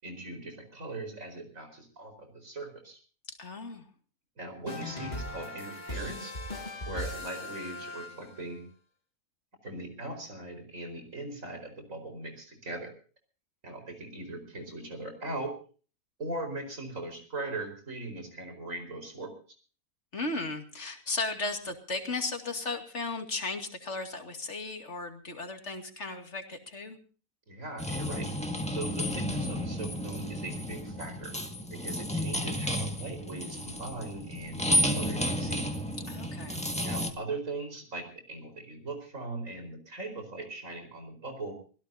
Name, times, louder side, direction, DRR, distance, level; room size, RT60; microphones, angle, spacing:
voice 1, 0.0-3.0 4.4-6.3 6.9-8.6 9.6-12.9 13.6-15.6 16.2-19.3 27.5-31.4 31.7-35.7 36.8-41.6, right 2 dB, 60° right, 6 dB, 5.0 m, -40 dB
voice 2, 3.4-3.8 20.1-27.0 36.1-36.6, left 3 dB, 50° left, 5 dB, 2.6 m, -35 dB
sound 1, 4.7-8.5, left 2 dB, 30° left, 2.3 m, -39 dB
sound 2, 27.8-37.1, equal, 5° left, 1.6 m, -32 dB
25.0 x 17.0 x 2.7 m, 0.39 s
omnidirectional pair, 1.5 m